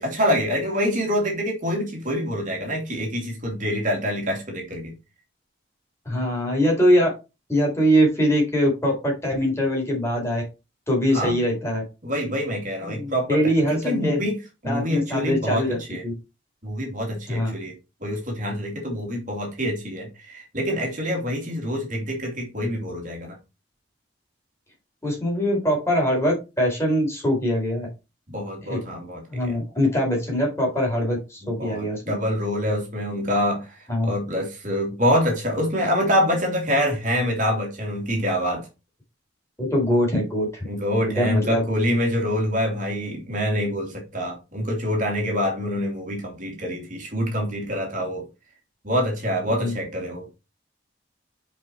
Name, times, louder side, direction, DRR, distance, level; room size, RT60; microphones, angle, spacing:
voice 1, 0.0-4.9 11.1-11.4 12.0-14.4 14.6-16.0 16.6-17.7 18.0-23.4 28.3-29.5 31.6-33.7 34.0-38.7 40.7-48.2 48.8-50.3, equal, 45° right, 2.8 m, -26 dB
voice 2, 6.0-7.1 7.5-10.4 10.9-11.8 12.8-14.3 14.6-15.8 16.0-16.1 17.3-17.5 25.0-27.9 28.6-28.8 29.3-32.1 33.9-34.1 39.6-40.7 41.0-41.6 49.6-49.7, equal, 15° left, 4.3 m, -22 dB
7.3 x 5.2 x 4.6 m
head